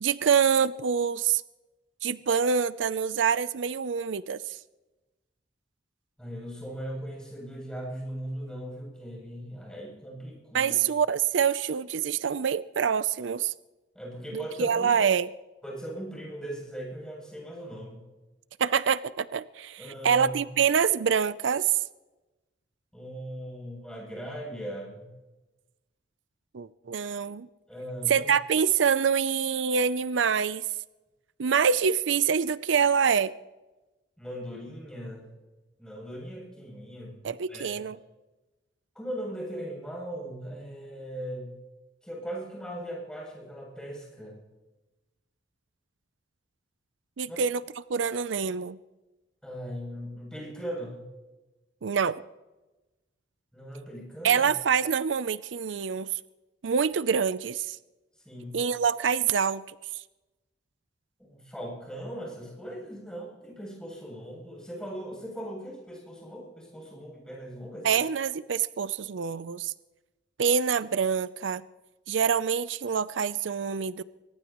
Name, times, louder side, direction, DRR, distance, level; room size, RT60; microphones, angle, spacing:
voice 1, 0.0-1.4 2.0-4.6 10.5-13.5 14.3-15.3 18.6-21.8 26.5-27.5 28.1-30.6 31.4-33.3 37.2-38.0 47.2-47.6 47.9-48.8 51.8-52.2 54.2-56.1 56.6-57.8 58.5-59.6 59.9-60.0 67.8-69.7 70.4-71.6 72.1-74.0, right 7 dB, 85° right, 16 dB, 0.5 m, -26 dB
voice 2, 6.2-10.8 13.9-14.9 15.6-18.0 19.8-20.3 22.9-25.1 27.7-28.3 34.2-35.3 35.8-37.2 37.5-37.8 38.9-41.5 42.0-44.4 47.2-47.4 49.4-51.0 53.5-54.5 58.2-58.6 61.3-68.0, equal, 5° left, -2 dB, 7.8 m, -39 dB
23.0 x 19.5 x 3.1 m, 1.1 s
head